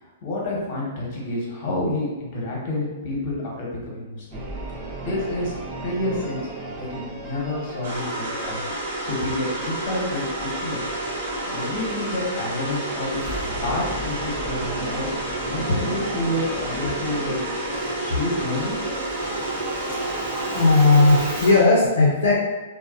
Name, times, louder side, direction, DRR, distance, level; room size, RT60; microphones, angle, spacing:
voice 1, 0.0-4.4 5.0-6.4 6.8-8.6 9.0-10.8 11.5-13.3 13.6-15.1 15.5-17.4 18.0-18.8, left 1 dB, 45° left, -3 dB, 0.9 m, -29 dB
Singing / Musical instrument, 4.3-21.7, right 2 dB, 25° right, 0.4 m, -35 dB
sound 1, 7.8-21.6, right 1 dB, 75° right, 0.9 m, -30 dB
voice 2, 20.6-22.4, left 3 dB, 80° left, -3 dB, 0.4 m, -16 dB
2.5 x 2.1 x 2.3 m, 1.2 s
hypercardioid pair, 140°, 0 cm